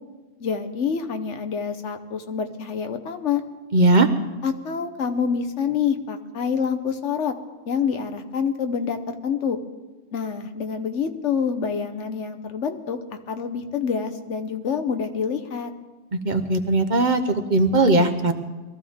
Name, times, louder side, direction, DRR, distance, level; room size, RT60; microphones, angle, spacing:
voice 1, 0.4-3.4 4.4-7.3 7.7-9.6 10.1-13.0 13.3-15.7, left 6 dB, 85° left, 7 dB, 1.3 m, -27 dB
voice 2, 3.7-4.1 16.2-18.3, right 2 dB, 45° right, 5 dB, 1.0 m, -19 dB
21.5 x 14.0 x 3.6 m, 1.2 s
omnidirectional pair, 1.2 m